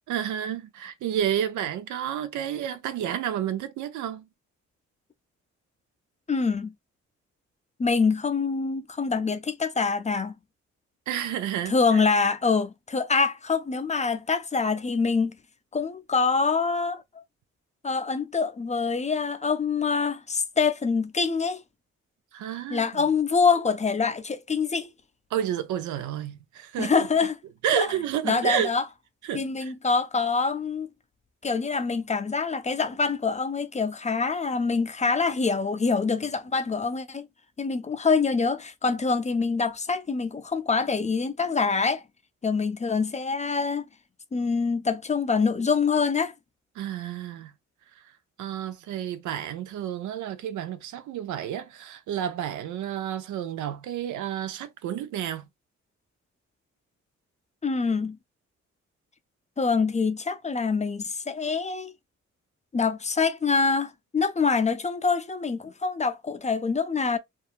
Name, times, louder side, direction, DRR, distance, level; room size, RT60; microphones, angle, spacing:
voice 1, 0.1-4.3 11.1-12.0 22.3-23.0 25.3-27.1 27.6-28.7 29.2-29.7 46.8-47.5 48.4-55.5, right 10 dB, 80° right, 0.5 m, -30 dB
voice 2, 6.3-6.7 7.8-10.3 11.7-15.3 15.7-17.0 17.8-21.6 22.7-24.9 26.8-27.4 27.7-27.9 28.2-28.8 29.3-30.9 31.4-37.3 37.6-42.0 42.4-43.8 44.3-46.3 57.6-58.2 59.6-61.9 62.7-67.2, left 4 dB, 25° left, 0.4 m, -25 dB
2.7 x 2.3 x 2.4 m
supercardioid pair, 50°, 30 cm